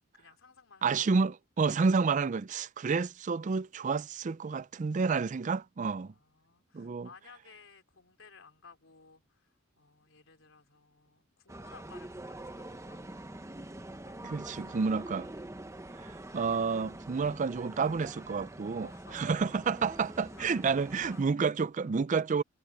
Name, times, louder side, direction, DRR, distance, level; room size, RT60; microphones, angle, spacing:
voice 1, 0.1-1.0 5.8-13.0 14.0-14.7 15.0-15.2 18.8-19.3 20.3-20.7 20.9-21.3 21.9-22.0, left 5 dB, 85° left, 3.7 m, -57 dB
voice 2, 0.8-6.1 6.7-7.1 14.2-15.3 16.0-18.9 19.1-22.4, right 5 dB, 40° right, 0.4 m, -30 dB
sound 1, 11.5-21.3, right 1 dB, 15° right, 1.1 m, -45 dB
head